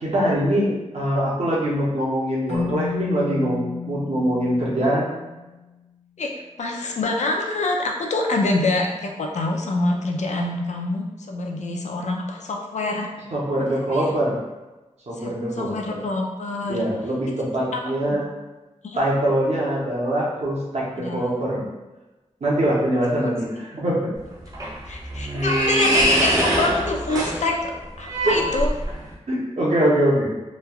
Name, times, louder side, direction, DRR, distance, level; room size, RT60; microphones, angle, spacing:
voice 1, 0.0-5.1 13.3-14.4 15.1-16.0 16.7-18.3 19.0-21.6 22.4-24.1 28.2-28.4 29.3-30.3, right 1 dB, 65° right, -5 dB, 0.8 m, -23 dB
Keyboard (musical), 2.5-5.7, left 6 dB, 65° left, 0.8 m, -32 dB
voice 2, 6.2-13.1 13.9-14.1 15.2-16.8 17.7-17.8 18.1-18.2 18.8-19.0 21.0-21.3 24.8-27.7 28.0-28.7, left 2 dB, 85° left, 1 dB, 0.4 m, -26 dB
sound 1, 24.2-29.1, equal, 30° right, 0.6 m, -23 dB
3.1 x 2.3 x 2.3 m, 1.1 s
wide cardioid pair, 95°, 12 cm